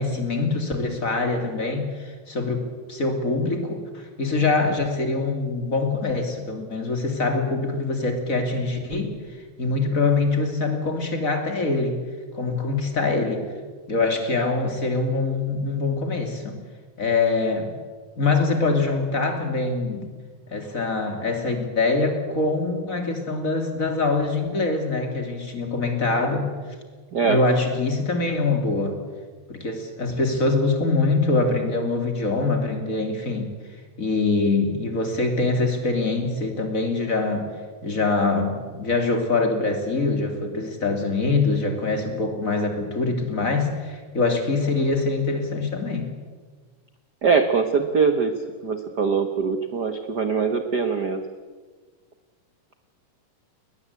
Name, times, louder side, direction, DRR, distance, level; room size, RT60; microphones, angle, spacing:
voice 1, 0.0-9.1 9.6-12.0 12.3-13.5 13.9-16.6 17.0-17.7 18.2-20.1 20.5-26.5 27.2-29.0 29.5-33.5 34.0-37.5 37.8-46.1, left 3 dB, 25° left, 5 dB, 2.9 m, -24 dB
voice 2, 27.1-27.4 47.2-48.3 48.6-51.2, right 5 dB, 90° right, 7 dB, 0.9 m, -22 dB
21.5 x 20.0 x 8.3 m, 1.4 s
omnidirectional pair, 3.9 m